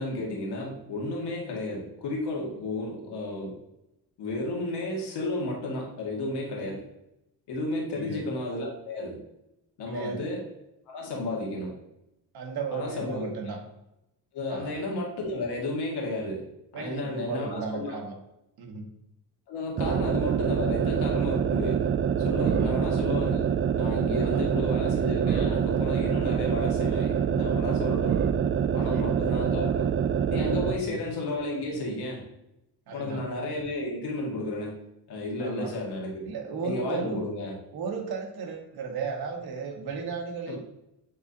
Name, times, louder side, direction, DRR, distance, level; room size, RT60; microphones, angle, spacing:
voice 1, 0.0-3.5 4.2-6.8 7.5-9.2 9.8-10.4 10.9-11.7 12.7-13.6 14.3-16.4 16.7-18.0 19.5-21.9 22.2-23.5 23.8-28.3 28.7-29.9 30.3-32.3 32.9-36.3 36.6-37.5 40.5-40.6, left 2 dB, 90° left, -2 dB, 2.0 m, -32 dB
voice 2, 9.9-10.3 12.3-13.6 14.5-14.7 16.7-18.2 18.6-18.9 22.5-22.9 24.2-24.4 28.8-29.1 30.7-30.9 32.9-33.2 35.4-35.7 36.2-37.2 37.7-40.6, right 5 dB, 70° right, 2 dB, 1.4 m, -35 dB
sound 1, 19.8-30.8, right 8 dB, 35° right, 0.4 m, -26 dB
9.3 x 3.9 x 2.8 m, 0.88 s
cardioid pair, 110°, 39 cm